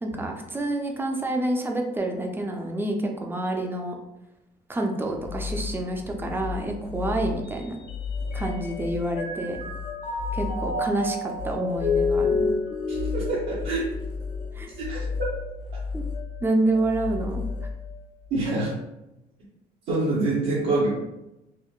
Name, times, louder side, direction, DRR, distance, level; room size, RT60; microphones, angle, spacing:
voice 1, 0.0-4.0 4.7-7.8 8.3-9.6 10.3-12.5 14.5-14.7 15.9-16.0 16.4-17.4, right 1 dB, 15° right, 2 dB, 0.4 m, -28 dB
sound 1, 5.1-18.5, left 5 dB, 75° left, 0.7 m, -34 dB
Mallet percussion, 7.4-8.8 9.2-14.6, left 3 dB, 55° left, 1.0 m, -29 dB
voice 2, 12.9-13.8 14.9-15.1 18.3-18.7 19.9-20.9, right 2 dB, 80° right, -8 dB, 0.9 m, -25 dB
3.6 x 2.0 x 2.4 m, 0.92 s
cardioid pair, 110°, 17 cm